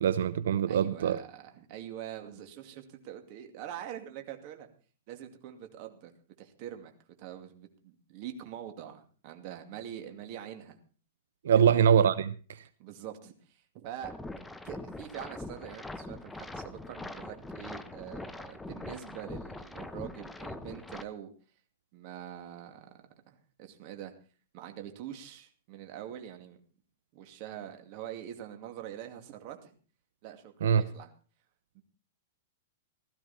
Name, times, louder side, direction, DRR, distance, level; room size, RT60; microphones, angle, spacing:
voice 1, 0.0-1.2 11.4-12.3 30.6-30.9, right 8 dB, 80° right, 0.7 m, -23 dB
voice 2, 0.7-4.7 5.1-6.1 6.4-6.9 7.2-10.8 11.5-11.6 12.8-14.1 14.6-21.3 21.9-24.1 24.5-26.6 27.1-29.8 30.2-31.1 31.7-31.8, right 10 dB, 40° right, 2.4 m, -44 dB
sound 1, 14.0-21.0, left 2 dB, 5° left, 0.7 m, -42 dB
16.5 x 13.5 x 4.3 m
supercardioid pair, 160°, 0 cm